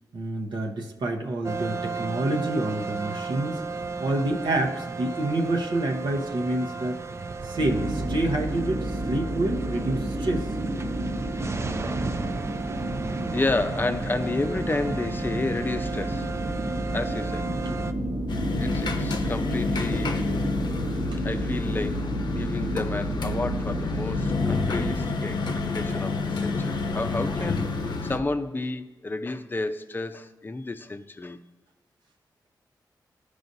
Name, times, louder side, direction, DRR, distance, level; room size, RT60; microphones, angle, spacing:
voice 1, 0.1-7.0 7.4-10.5 21.1-21.2, right 1 dB, 80° right, 1 dB, 0.9 m, -28 dB
sound 1, 1.4-17.9, right 4 dB, 35° right, 0.4 m, -34 dB
sound 2, 7.6-25.1, right 1 dB, 55° right, 1.1 m, -31 dB
voice 2, 13.3-16.3 16.9-17.6 18.6-20.3 21.2-27.7 28.0-31.4, left 2 dB, 25° left, 9 dB, 0.5 m, -31 dB
sound 3, 18.3-28.2, left 4 dB, 70° left, 0.7 m, -29 dB
14.0 x 4.8 x 2.7 m, 1.2 s
cardioid pair, 85°, 8 cm